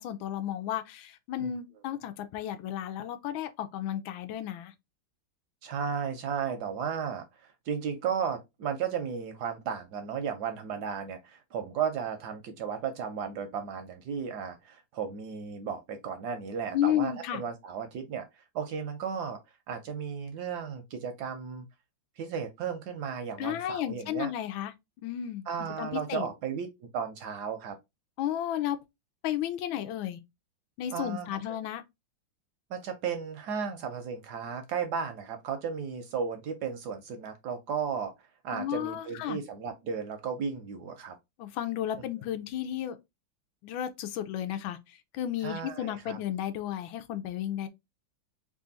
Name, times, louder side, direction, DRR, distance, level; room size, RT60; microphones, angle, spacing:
voice 1, 0.0-4.7 16.7-17.4 23.4-24.7 25.0-25.5 25.8-26.3 28.2-28.8 29.2-30.2 30.8-31.8 38.5-39.4 41.4-43.0 43.6-47.7, left 11 dB, 85° left, 1.4 m, -33 dB
voice 2, 5.6-19.4 19.7-21.7 22.2-24.3 25.5-27.8 30.9-31.3 32.7-38.1 38.4-41.2 45.4-46.2, right 7 dB, 75° right, 1.0 m, -34 dB
3.4 x 2.4 x 3.8 m
omnidirectional pair, 2.1 m